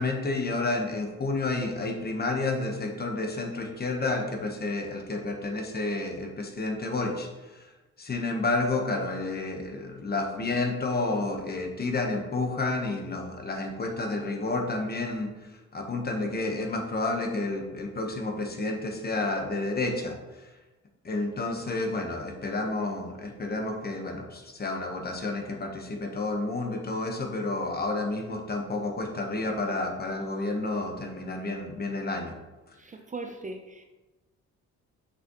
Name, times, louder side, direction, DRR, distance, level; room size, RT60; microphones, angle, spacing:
voice 1, 0.0-7.7 8.0-20.2 20.4-20.5 21.0-32.3, left 2 dB, 30° left, 2 dB, 1.1 m, -30 dB
voice 2, 32.8-33.8, right 3 dB, 25° right, 4 dB, 0.5 m, -39 dB
6.0 x 5.5 x 3.0 m, 1.1 s
cardioid pair, 90°, 30 cm